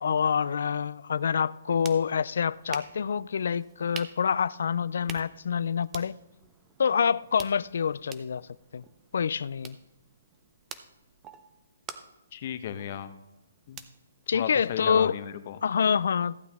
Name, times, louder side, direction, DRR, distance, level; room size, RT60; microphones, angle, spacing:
voice 1, 0.0-6.2 6.8-8.4 8.7-8.8 9.1-9.8 14.3-15.1 15.6-16.4, left 7 dB, 65° left, 0.3 m, -26 dB
sound 1, 1.4-15.1, right 7 dB, 15° right, 0.7 m, -48 dB
voice 2, 12.3-13.1 13.7-13.8 14.3-15.6, left 9 dB, 45° left, 0.9 m, -35 dB
15.0 x 8.3 x 3.5 m
hypercardioid pair, 155°, 0 cm